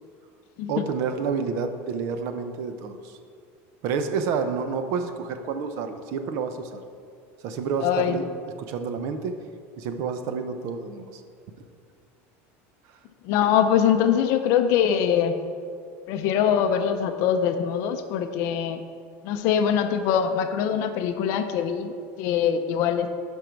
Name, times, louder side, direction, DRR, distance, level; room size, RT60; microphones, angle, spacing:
voice 1, 0.7-3.2 3.8-6.8 7.4-8.3 8.6-9.4 9.8-11.2, right 5 dB, 45° right, 8 dB, 0.6 m, -29 dB
voice 2, 7.8-8.2 13.2-15.4 16.1-18.8 19.2-23.2, left 8 dB, 45° left, 8 dB, 0.5 m, -23 dB
11.0 x 5.3 x 4.5 m, 2.2 s
cardioid pair, 180°, 7 cm